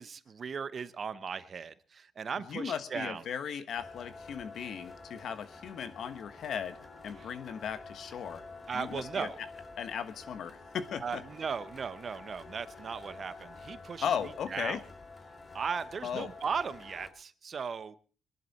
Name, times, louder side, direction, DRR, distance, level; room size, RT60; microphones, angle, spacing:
voice 1, 0.0-3.2 7.2-7.3 8.7-9.4 11.0-14.1 14.5-14.8 15.5-18.0, right 6 dB, 45° right, 15 dB, 0.8 m, -37 dB
voice 2, 2.5-6.8 7.0-8.4 8.7-9.3 9.8-11.2 14.0-14.8 16.0-16.3, left 8 dB, 65° left, 11 dB, 1.3 m, -37 dB
sound 1, 3.8-17.1, left 3 dB, 30° left, 2.2 m, -49 dB
22.0 x 11.0 x 4.2 m, 0.40 s
cardioid pair, 90°, 0 cm